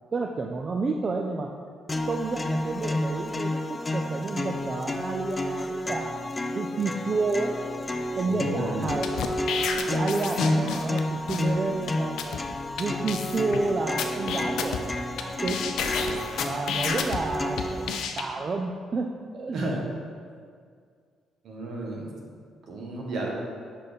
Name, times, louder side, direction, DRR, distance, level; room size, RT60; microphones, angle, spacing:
voice 1, 0.1-1.5 2.1-6.2 6.5-7.5 8.2-9.1 9.9-12.4 12.8-14.9 15.2-15.6 16.5-19.1 19.3-19.6, right 3 dB, 40° right, 2 dB, 0.4 m, -30 dB
sound 1, 1.9-17.9, left 1 dB, 25° left, 0.4 m, -30 dB
voice 2, 8.2-8.9 19.5-19.8 21.4-22.2 22.7-23.3, right 2 dB, 65° right, -2 dB, 1.3 m, -32 dB
sound 2, 8.9-11.0 11.3-11.4 11.9-12.0 12.2-12.4 12.8-12.9 13.1-13.6 14.0-15.2 15.5-17.2 17.6-18.2, left 7 dB, 80° left, 0.5 m, -30 dB
5.7 x 4.1 x 5.1 m, 2.1 s
cardioid pair, 90°, 0 cm